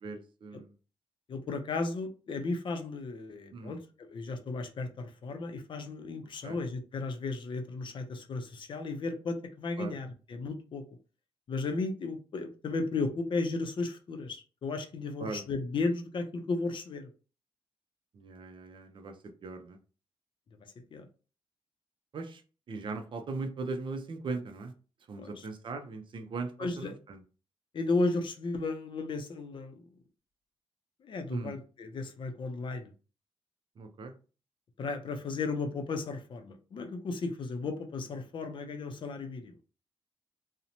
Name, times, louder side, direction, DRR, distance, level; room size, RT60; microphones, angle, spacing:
voice 1, 0.0-0.7 3.5-3.8 6.4-6.6 9.8-9.9 15.2-15.4 18.1-19.8 22.1-22.4 22.7-24.7 25.1-27.2 31.3-31.6 33.8-34.1, right 3 dB, 55° right, 6 dB, 0.5 m, -39 dB
voice 2, 1.3-10.8 11.5-17.1 20.9-21.1 25.2-25.5 26.6-27.0 27.7-29.8 31.0-32.9 34.8-39.5, left 3 dB, 55° left, 6 dB, 0.5 m, -34 dB
2.8 x 2.0 x 2.6 m, 0.35 s
wide cardioid pair, 125°, 10 cm